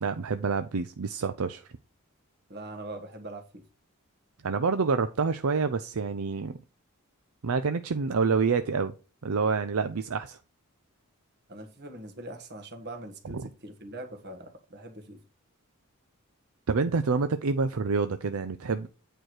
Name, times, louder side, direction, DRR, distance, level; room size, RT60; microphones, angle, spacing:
voice 1, 0.0-1.6 4.4-6.6 7.4-8.9 9.2-10.4 13.2-13.3 16.7-18.9, right 4 dB, 70° right, 0.6 m, -27 dB
voice 2, 2.5-3.6 11.5-15.2, right 1 dB, 50° right, 1.8 m, -42 dB
9.0 x 4.5 x 4.8 m
head